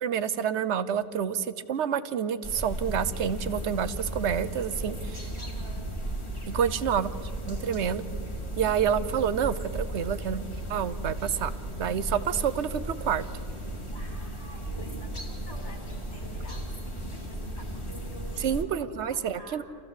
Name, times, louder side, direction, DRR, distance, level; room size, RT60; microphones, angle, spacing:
voice 1, 0.0-5.3 6.5-7.1 7.5-8.0 8.6-11.5 11.8-13.3 18.4-19.6, right 8 dB, 70° right, 14 dB, 1.1 m, -28 dB
sound 1, 2.4-18.6, right 1 dB, 25° left, 2.2 m, -35 dB
voice 2, 5.4-5.9 8.5-9.0 12.1-12.4 13.9-16.6 17.1-19.6, equal, 70° left, 0 dB, 5.1 m, -48 dB
28.0 x 15.0 x 8.3 m, 2.7 s
omnidirectional pair, 1.2 m